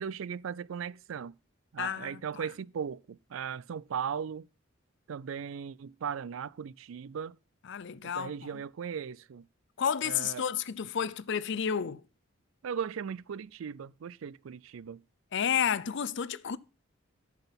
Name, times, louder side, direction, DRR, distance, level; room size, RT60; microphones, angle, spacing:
voice 1, 0.0-1.3 1.7-4.5 5.1-7.4 8.0-9.4 10.1-10.4 12.6-15.0, right 7 dB, 80° right, 0.4 m, -37 dB
voice 2, 1.8-2.5 7.6-8.6 9.8-12.0 15.3-16.6, left 8 dB, 65° left, 0.5 m, -31 dB
10.5 x 6.0 x 5.7 m
head